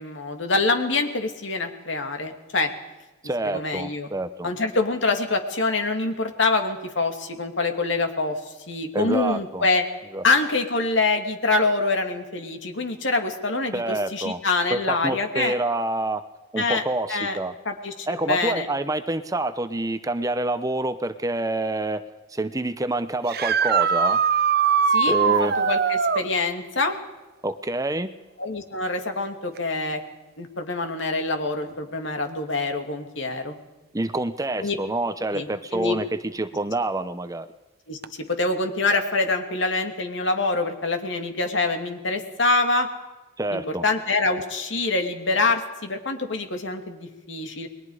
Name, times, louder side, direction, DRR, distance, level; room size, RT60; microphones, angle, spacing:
voice 1, 0.0-2.7 3.4-4.1 4.4-8.4 8.7-9.8 10.2-15.5 16.6-16.8 17.1-17.4 17.7-18.7 24.9-27.0 28.4-30.0 30.4-33.6 34.6-34.8 35.3-36.0 37.9-38.0 38.3-42.9 43.5-47.7, left 3 dB, 65° left, 5 dB, 2.6 m, -25 dB
voice 2, 3.2-4.5 8.9-9.7 10.1-10.2 13.7-14.4 14.7-16.2 16.5-17.5 18.1-22.0 22.3-24.2 25.1-25.5 27.4-28.1 33.9-37.5 43.4-43.8, right 2 dB, 15° right, 11 dB, 0.8 m, -27 dB
sound 1, 23.3-26.3 29.6-29.7 31.7-31.8 38.0-38.1, right 6 dB, 50° right, 0.8 m, -21 dB
29.5 x 22.0 x 5.0 m, 1.1 s
head